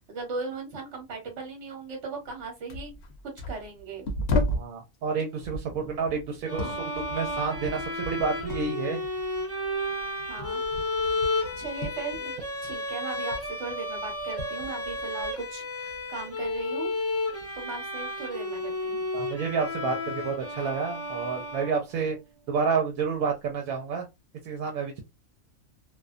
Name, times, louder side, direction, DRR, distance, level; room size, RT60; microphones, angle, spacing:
voice 1, 0.1-2.9 3.5-4.0 10.3-10.6 11.6-12.3 12.6-16.9 17.5-19.0, right 4 dB, 60° right, 2 dB, 1.2 m, -37 dB
sound 1, 2.3-2.4 2.7-4.8 5.4-8.8 9.0-12.9 13.1-15.4 15.9-16.6 17.4-17.6, left 2 dB, 60° left, 0.8 m, -35 dB
voice 2, 4.6-9.0 19.1-22.2 22.5-24.1 24.4-25.0, right 5 dB, 80° right, 2 dB, 1.0 m, -29 dB
sound 2, 6.5-22.1, left 2 dB, 15° left, 0.6 m, -32 dB
2.4 x 2.2 x 2.4 m, 0.23 s
omnidirectional pair, 1.4 m